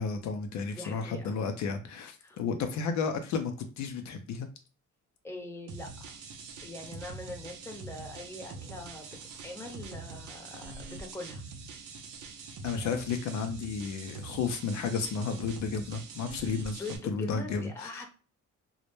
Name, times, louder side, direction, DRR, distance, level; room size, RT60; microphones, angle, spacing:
voice 1, 0.0-4.5 12.6-18.0, left 5 dB, 70° left, 6 dB, 0.5 m, -33 dB
voice 2, 0.6-1.4 2.2-2.4 2.9-3.0 5.2-6.2 6.6-11.6 12.8-12.9 16.7-18.1, left 2 dB, 10° left, 1 dB, 0.7 m, -43 dB
sound 1, 5.7-17.0, right 4 dB, 90° right, 0.5 m, -44 dB
2.1 x 2.1 x 3.0 m, 0.35 s
cardioid pair, 90°, 30 cm